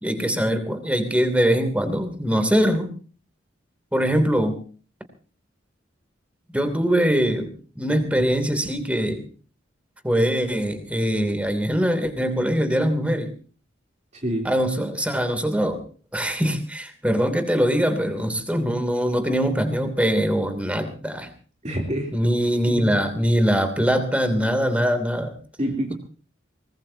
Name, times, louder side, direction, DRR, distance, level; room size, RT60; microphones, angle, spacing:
voice 1, 0.0-2.9 3.9-4.6 6.5-9.2 10.0-13.3 14.4-15.8 16.1-21.3 22.1-25.3, equal, 5° right, 8 dB, 2.9 m, -22 dB
voice 2, 14.1-14.5 21.6-22.1 22.7-23.0 25.6-25.9, right 1 dB, 35° right, 2 dB, 3.3 m, -27 dB
23.5 x 20.0 x 2.9 m, 0.40 s
head